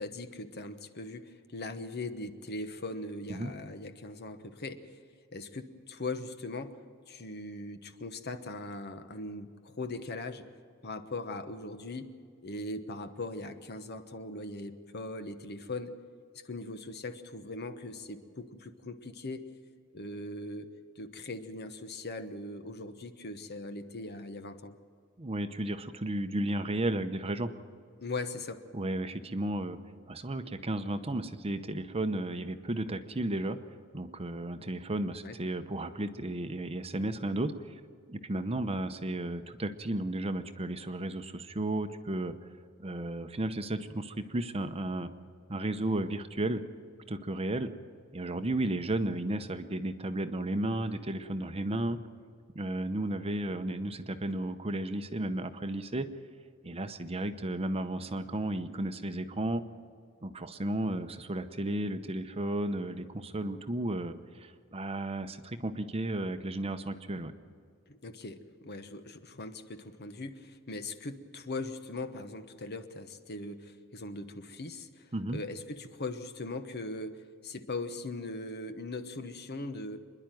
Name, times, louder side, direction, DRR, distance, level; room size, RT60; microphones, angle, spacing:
voice 1, 0.0-4.8 5.3-6.8 7.1-10.5 10.8-12.1 12.4-15.9 16.4-19.4 19.9-20.7 21.0-24.7 28.0-28.6 35.2-35.4 67.9-80.0, left 2 dB, 55° left, 9 dB, 1.2 m, -40 dB
voice 2, 25.2-27.5 28.7-29.8 30.1-33.6 33.9-37.8 38.1-42.3 42.8-45.1 45.5-46.6 47.1-47.7 48.1-52.0 52.5-56.1 56.6-59.6 60.2-67.3 75.1-75.4, right 1 dB, 30° right, 10 dB, 0.8 m, -33 dB
26.0 x 11.0 x 9.2 m, 2.2 s
head